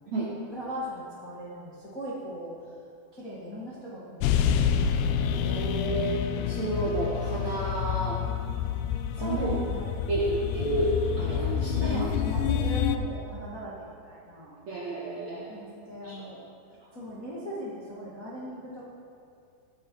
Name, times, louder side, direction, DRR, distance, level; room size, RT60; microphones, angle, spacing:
voice 1, 0.5-2.5 3.1-4.6 9.1-10.0 11.8-14.6 15.5-16.4 16.9-18.8, equal, 40° left, -7 dB, 1.1 m, -38 dB
sound 1, 4.2-13.0, left 8 dB, 85° left, 2.4 m, -28 dB
voice 2, 5.3-8.2 9.2-9.6 10.1-12.0 14.7-16.3, right 2 dB, 65° right, -5 dB, 1.8 m, -31 dB
17.0 x 10.5 x 4.7 m, 2.4 s
omnidirectional pair, 5.1 m